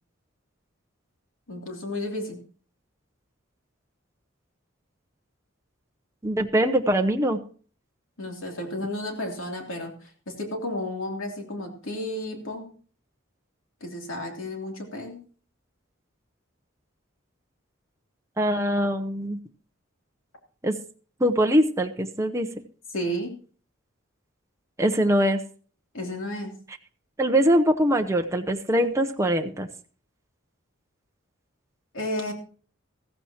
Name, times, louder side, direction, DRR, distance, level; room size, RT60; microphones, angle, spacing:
voice 1, 1.5-2.4 8.2-12.7 13.8-15.2 22.9-23.3 25.9-26.6 31.9-32.3, left 1 dB, 75° left, 2 dB, 3.1 m, -32 dB
voice 2, 6.2-7.4 18.4-19.4 20.6-20.8 21.2-22.5 24.8-25.4 27.2-29.7, equal, 15° right, 4 dB, 0.8 m, -22 dB
15.0 x 15.0 x 2.9 m, 0.42 s
head